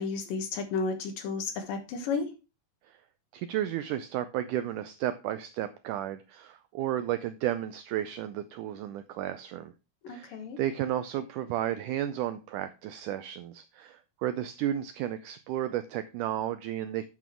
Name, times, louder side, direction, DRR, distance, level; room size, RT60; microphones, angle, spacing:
voice 1, 0.0-2.3 10.0-10.6, left 4 dB, 70° left, 6 dB, 3.0 m, -32 dB
voice 2, 3.3-9.7 10.1-17.1, right 12 dB, 85° right, 11 dB, 1.8 m, -33 dB
8.9 x 6.1 x 4.4 m, 0.29 s
omnidirectional pair, 4.2 m